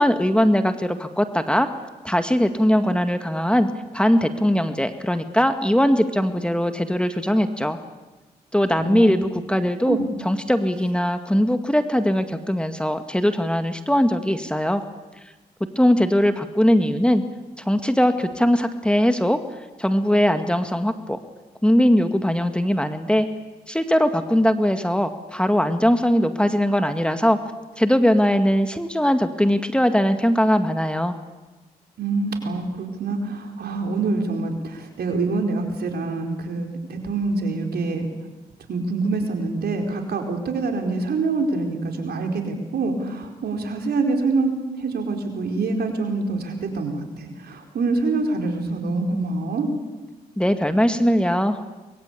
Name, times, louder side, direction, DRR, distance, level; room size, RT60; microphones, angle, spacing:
voice 1, 0.0-1.7 2.0-3.7 3.9-7.8 8.5-14.8 15.8-17.2 17.7-19.4 19.8-21.2 21.6-23.3 23.7-27.4 27.8-31.2 50.4-51.6, equal, 5° left, 8 dB, 2.0 m, -20 dB
voice 2, 8.8-9.1 9.9-10.1 32.0-38.1 38.7-49.7, right 3 dB, 70° right, 3 dB, 4.7 m, -25 dB
23.5 x 22.0 x 8.6 m, 1.1 s
supercardioid pair, 50°, 17 cm